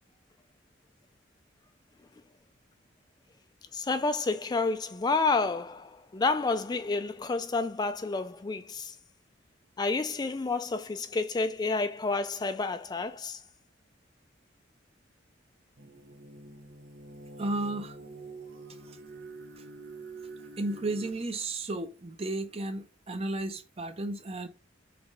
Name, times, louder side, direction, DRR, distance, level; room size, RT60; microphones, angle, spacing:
voice 1, 3.7-9.0 9.8-13.4, left 3 dB, 20° left, 0.3 m, -29 dB
sound 1, 15.8-21.1, right 3 dB, 60° right, 1.1 m, -46 dB
voice 2, 17.4-18.0 18.9-19.0 20.6-24.5, right 2 dB, 30° right, 0.7 m, -33 dB
5.9 x 3.1 x 5.3 m
head